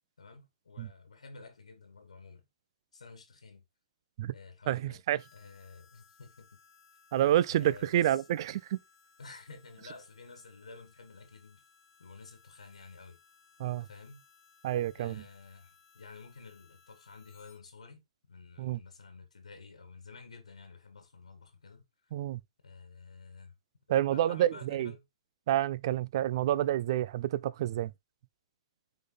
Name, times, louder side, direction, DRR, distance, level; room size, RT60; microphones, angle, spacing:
voice 1, 0.2-2.5 2.9-3.6 4.3-5.0 5.3-6.5 7.5-8.2 9.2-11.6 12.0-13.2 13.8-14.2 14.9-22.1 22.6-23.5 23.9-25.1, left 4 dB, 85° left, 1.5 m, -51 dB
voice 2, 4.7-5.2 7.1-8.8 13.6-13.9 14.6-15.2 18.6-18.8 22.1-22.4 23.9-24.9 25.5-27.9, right 12 dB, 50° right, 0.4 m, -28 dB
Harmonica, 5.2-17.6, left 6 dB, 45° left, 1.4 m, -63 dB
6.2 x 4.0 x 3.8 m
hypercardioid pair, 130°, 3 cm